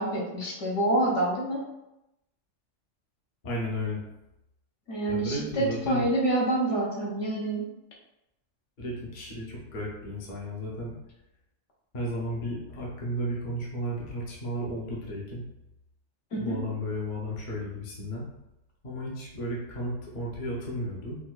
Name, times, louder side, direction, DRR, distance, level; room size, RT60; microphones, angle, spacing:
voice 1, 0.0-1.6 4.9-7.6 16.3-16.6, right 1 dB, 70° left, -4 dB, 1.1 m, -27 dB
voice 2, 3.4-4.1 5.1-6.1 8.8-11.0 11.9-15.4 16.4-18.3 18.8-21.2, equal, 45° left, -3 dB, 0.8 m, -34 dB
4.4 x 2.2 x 2.3 m, 0.89 s
omnidirectional pair, 1.3 m